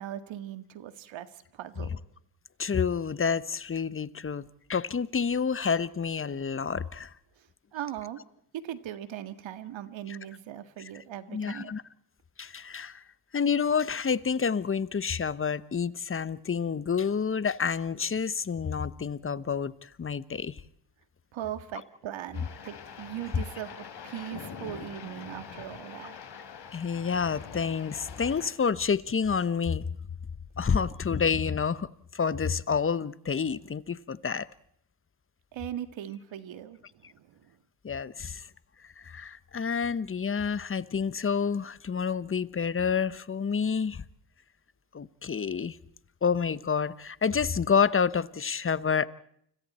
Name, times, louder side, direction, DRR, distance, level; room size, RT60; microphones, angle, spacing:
voice 1, 0.0-2.0 7.7-8.2 8.6-11.7 21.3-26.1 35.5-37.6, right 11 dB, 65° right, 2.0 m, -39 dB
voice 2, 2.6-7.1 10.1-10.2 11.3-11.8 12.4-13.0 13.3-20.6 26.7-29.8 30.6-34.5 37.8-38.5 39.0-44.0 44.9-45.8 46.2-49.1, left 6 dB, 25° left, 1.1 m, -29 dB
sound 1, 22.3-28.5, left 7 dB, 50° left, 4.1 m, -44 dB
30.0 x 25.5 x 4.4 m
supercardioid pair, 65°, 50 cm